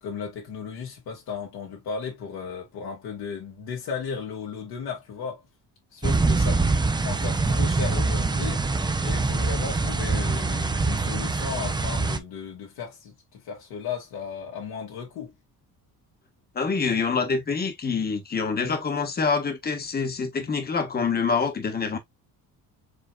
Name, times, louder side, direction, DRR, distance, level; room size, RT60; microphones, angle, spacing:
voice 1, 0.0-5.5 5.9-8.6 9.0-15.4, left 6 dB, 80° left, 2.1 m, -35 dB
sound 1, 6.0-12.2, right 3 dB, 10° right, 0.5 m, -24 dB
voice 2, 16.5-22.0, left 5 dB, 25° left, 1.2 m, -26 dB
4.8 x 3.3 x 2.4 m
cardioid pair, 115°, 36 cm